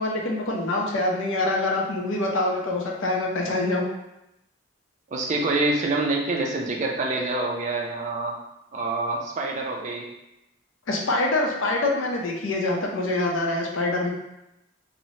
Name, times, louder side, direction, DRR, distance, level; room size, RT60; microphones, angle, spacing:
voice 1, 0.0-3.8 10.9-14.1, left 2 dB, 75° left, 0 dB, 0.5 m, -25 dB
voice 2, 5.1-8.3 8.7-10.1, right 2 dB, 35° right, 0 dB, 0.3 m, -26 dB
3.0 x 2.0 x 2.7 m, 0.89 s
head